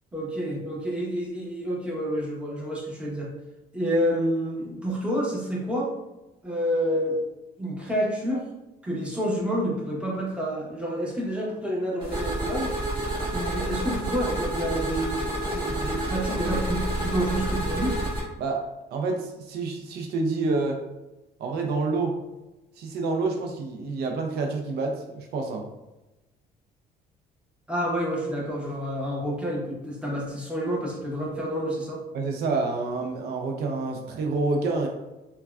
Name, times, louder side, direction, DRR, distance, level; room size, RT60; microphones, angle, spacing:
voice 1, 0.1-3.3 3.7-5.9 6.4-7.2 7.6-8.4 8.8-12.7 13.3-18.0 27.7-32.0, equal, 5° right, -4 dB, 0.8 m, -28 dB
sound 1, 12.0-18.2, right 1 dB, 30° right, 1.4 m, -29 dB
voice 2, 18.9-20.8 21.4-22.2 22.8-25.6 32.1-34.9, right 3 dB, 75° right, 2 dB, 0.5 m, -28 dB
3.3 x 2.2 x 2.3 m, 1.0 s
cardioid pair, 110°, 17 cm